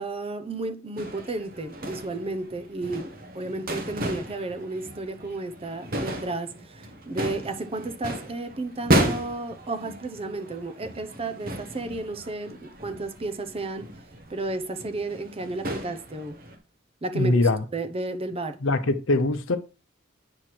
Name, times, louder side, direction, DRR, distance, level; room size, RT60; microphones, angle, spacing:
voice 1, 0.0-13.9 14.3-16.4 17.0-18.6, right 2 dB, 30° right, 0.7 m, -33 dB
sound 1, 1.0-16.6, right 1 dB, 45° right, 1.2 m, -33 dB
voice 2, 17.1-17.6 18.6-19.6, left 2 dB, 70° left, 0.8 m, -22 dB
8.7 x 3.2 x 5.9 m
head